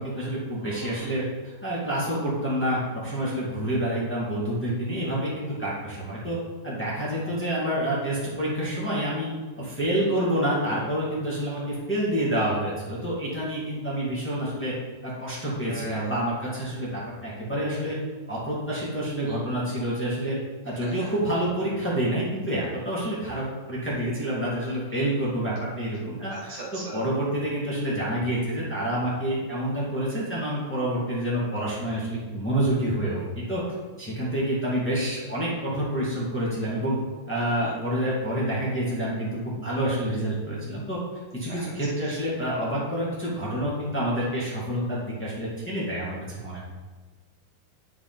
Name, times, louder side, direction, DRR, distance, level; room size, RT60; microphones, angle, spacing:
voice 1, 0.0-6.4 6.6-9.3 9.6-14.7 15.0-18.0 18.3-20.4 20.6-33.2 33.5-33.6 34.0-37.0 37.3-41.0 41.3-46.6, right 1 dB, 15° left, -7 dB, 0.5 m, -28 dB
voice 2, 0.6-1.1 15.6-16.1 19.2-19.4 20.8-20.9 26.3-27.1 37.6-37.7 41.5-41.7, right 2 dB, 50° right, -6 dB, 3.1 m, -38 dB
11.5 x 5.0 x 4.0 m, 1.3 s
omnidirectional pair, 4.5 m